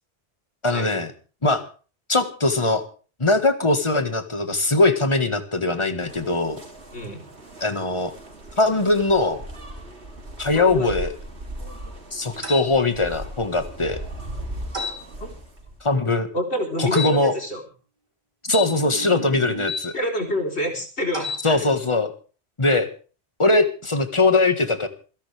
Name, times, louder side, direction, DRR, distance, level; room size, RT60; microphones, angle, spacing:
voice 1, 0.6-1.1 1.4-1.6 2.1-2.8 3.2-6.6 7.6-8.1 8.6-9.4 10.4-11.1 12.1-14.0 15.8-16.3 16.8-17.3 18.5-19.9 21.4-22.1 22.6-22.9 23.4-24.9, left 2 dB, 25° left, 8 dB, 1.7 m, -21 dB
sound 1, 6.1-15.9, right 1 dB, 80° right, 3.3 m, -38 dB
voice 2, 10.5-10.9 15.2-15.3 16.3-17.6 19.9-21.6, equal, 75° left, 2 dB, 4.2 m, -27 dB
sound 2, 12.4-12.7 14.7-15.0 16.9-17.2 18.5-19.9 21.1-21.5, left 3 dB, 30° right, 3.3 m, -30 dB
28.0 x 11.0 x 3.5 m, 0.38 s
omnidirectional pair, 1.1 m